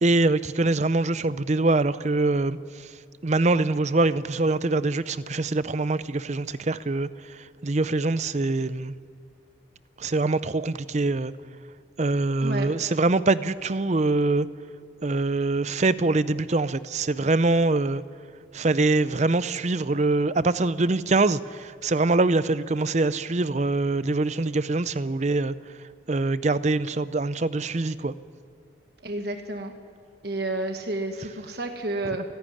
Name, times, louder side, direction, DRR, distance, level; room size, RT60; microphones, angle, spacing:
voice 1, 0.0-2.9 3.2-8.9 10.0-11.3 12.0-14.5 15.0-18.0 18.5-25.6 26.1-28.1 32.1-32.2, right 2 dB, 35° right, 15 dB, 0.5 m, -24 dB
voice 2, 29.0-29.7 30.2-32.2, right 2 dB, 55° right, 5 dB, 1.4 m, -30 dB
29.5 x 11.5 x 9.9 m, 2.2 s
head